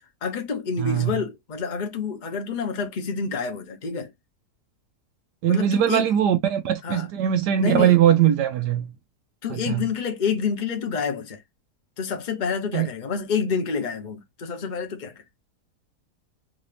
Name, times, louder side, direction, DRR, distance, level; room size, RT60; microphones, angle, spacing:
voice 1, 0.2-4.1 5.5-6.1 6.8-7.1 7.5-8.0 9.4-11.4 12.0-15.1, left 6 dB, 35° left, 0.8 m, -28 dB
voice 2, 0.8-1.1 5.4-8.9 9.7-9.8 12.7-12.9, right 10 dB, 90° right, 1.3 m, -20 dB
3.9 x 2.6 x 3.2 m
omnidirectional pair, 1.7 m